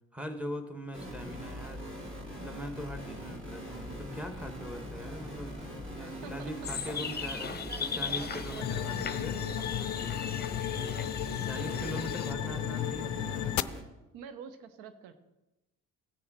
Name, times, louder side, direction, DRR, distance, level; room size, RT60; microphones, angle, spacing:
voice 1, 0.1-1.8 2.4-9.4 11.4-13.5, equal, 5° right, 5 dB, 1.6 m, -41 dB
sound 1, 0.9-13.8, equal, 30° right, 3.0 m, -42 dB
voice 2, 6.0-9.8 10.6-12.8 13.1-13.4 14.1-15.1, right 7 dB, 70° right, 11 dB, 1.1 m, -49 dB
sound 2, 6.6-12.3, left 6 dB, 25° left, 1.0 m, -38 dB
sound 3, 8.6-13.6, left 14 dB, 45° left, 0.5 m, -34 dB
16.5 x 6.6 x 4.4 m, 0.99 s
hypercardioid pair, 55°, 42 cm